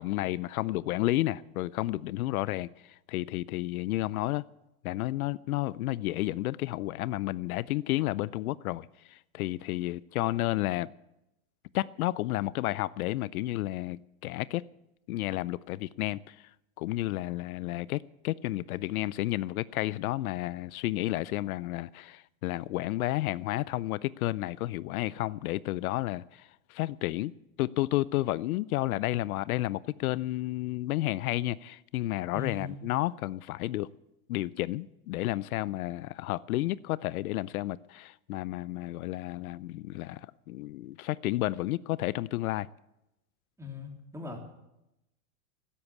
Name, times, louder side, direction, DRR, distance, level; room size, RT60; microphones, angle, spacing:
voice 1, 0.0-4.4 4.8-10.9 11.7-14.6 15.1-16.5 16.8-27.3 27.6-33.9 34.3-42.7, left 16 dB, 80° left, 0.6 m, -31 dB
voice 2, 32.3-32.7 43.6-44.4, left 5 dB, 5° right, 3.3 m, -39 dB
13.0 x 11.0 x 8.6 m
supercardioid pair, 130°, 42 cm